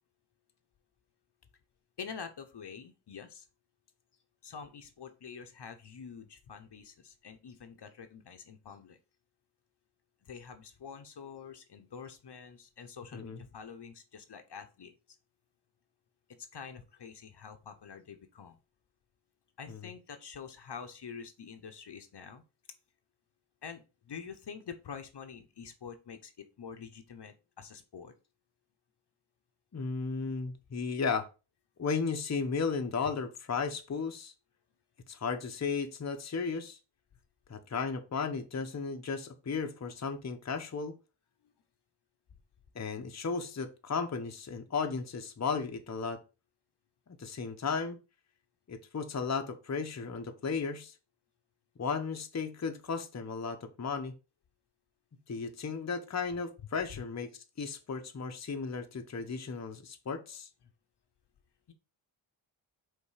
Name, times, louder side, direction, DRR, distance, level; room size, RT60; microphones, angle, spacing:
voice 1, 2.0-3.5 4.4-9.0 10.2-15.2 16.3-18.6 19.6-22.4 23.6-28.1 41.4-41.5 61.7-61.8, left 6 dB, 55° left, 7 dB, 1.0 m, -47 dB
voice 2, 29.7-31.3 31.8-34.3 35.1-36.8 37.5-41.0 42.7-46.2 47.2-48.0 48.7-50.9 51.8-54.1 55.3-60.5, left 5 dB, 35° left, 5 dB, 0.9 m, -35 dB
5.6 x 3.6 x 5.0 m, 0.31 s
cardioid pair, 80°, 48 cm